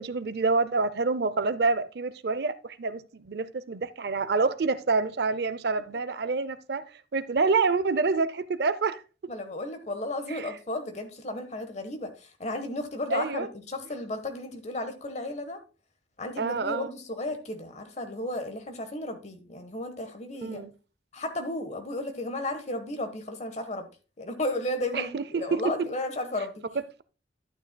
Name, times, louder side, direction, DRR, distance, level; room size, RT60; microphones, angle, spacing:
voice 1, 0.0-6.9 7.1-9.0 10.3-10.5 13.1-13.5 16.4-16.9 20.4-20.7 24.9-25.9 26.8-27.0, right 4 dB, 60° right, 0.5 m, -27 dB
voice 2, 9.3-15.6 16.2-20.6 21.1-23.9 24.2-26.6, left 1 dB, 40° left, 1.2 m, -34 dB
11.5 x 9.2 x 2.2 m
head